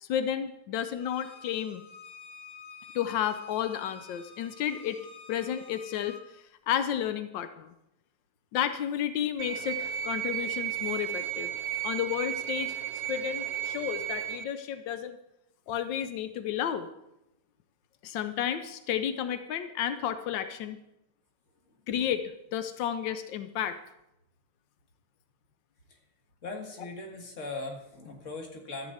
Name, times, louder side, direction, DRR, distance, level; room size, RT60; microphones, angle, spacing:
voice 1, 0.0-1.8 2.9-5.0 5.3-7.7 8.5-11.5 11.8-12.8 13.1-15.2 15.7-16.9 18.0-20.8 21.9-22.2 22.5-23.8, left 10 dB, 90° left, 10 dB, 1.4 m, -32 dB
Bowed string instrument, 1.0-6.2, left 5 dB, 70° left, 1.9 m, -49 dB
sound 1, 9.4-14.4, right 11 dB, 65° right, 1.1 m, -34 dB
voice 2, 26.4-28.9, left 3 dB, 45° left, 2 dB, 2.0 m, -39 dB
13.5 x 5.4 x 7.9 m, 0.87 s
omnidirectional pair, 1.9 m